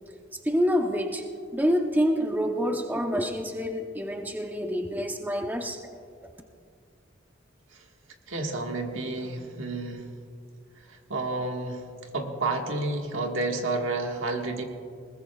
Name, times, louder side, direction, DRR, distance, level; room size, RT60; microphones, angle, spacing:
voice 1, 0.5-1.2 1.5-5.8, equal, 10° right, 4 dB, 0.7 m, -27 dB
voice 2, 8.3-10.1 10.9-14.6, right 2 dB, 85° right, 2 dB, 1.6 m, -30 dB
20.5 x 19.5 x 2.3 m, 2.3 s
head